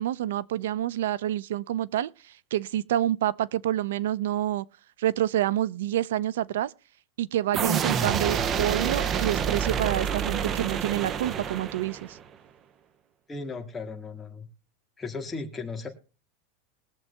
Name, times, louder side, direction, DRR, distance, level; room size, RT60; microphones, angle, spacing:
voice 1, 0.0-4.7 5.0-6.7 7.2-12.2, right 12 dB, 90° right, 0.5 m, -28 dB
sound 1, 7.5-12.2, right 7 dB, 25° right, 0.6 m, -28 dB
voice 2, 13.3-14.5 15.0-15.9, left 4 dB, 10° left, 1.9 m, -36 dB
21.5 x 7.5 x 3.3 m
supercardioid pair, 165°, 0 cm